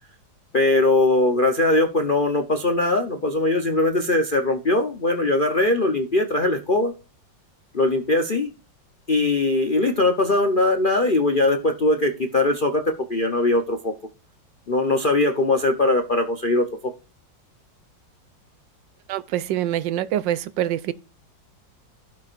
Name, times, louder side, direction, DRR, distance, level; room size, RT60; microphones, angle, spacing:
voice 1, 0.5-6.9 7.7-8.5 9.1-13.9 14.7-16.9, left 2 dB, 50° left, 0.6 m, -21 dB
voice 2, 19.1-20.9, right 12 dB, 80° right, 1.3 m, -25 dB
16.5 x 5.9 x 2.5 m
omnidirectional pair, 2.0 m